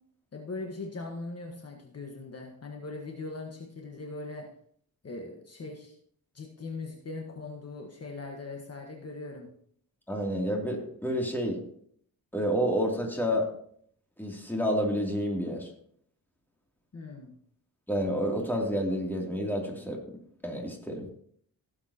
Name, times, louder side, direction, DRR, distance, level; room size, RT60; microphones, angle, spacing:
voice 1, 0.3-4.5 5.0-5.9 6.3-9.5 16.9-17.3, left 3 dB, 40° left, 1 dB, 1.5 m, -40 dB
voice 2, 10.1-11.6 12.3-13.5 14.2-15.7 17.9-20.0 20.4-21.1, equal, 5° left, -1 dB, 2.8 m, -29 dB
16.5 x 7.5 x 2.9 m, 0.64 s
cardioid pair, 95°, 36 cm